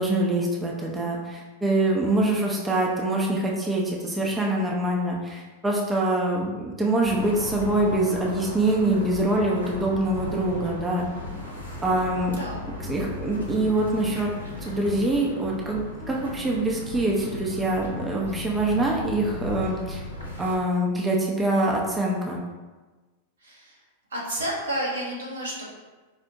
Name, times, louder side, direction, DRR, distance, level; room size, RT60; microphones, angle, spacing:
voice 1, 0.0-11.1 11.8-12.4 12.8-14.3 14.6-20.0 20.4-22.4, right 1 dB, 15° right, -2 dB, 0.5 m, -24 dB
sound 1, 7.0-20.6, left 2 dB, 90° left, 0.7 m, -36 dB
voice 2, 23.4-23.7 24.1-25.7, right 1 dB, 75° right, -4 dB, 1.0 m, -31 dB
4.4 x 2.1 x 2.7 m, 1.3 s
figure-of-eight pair, 95°, 0 cm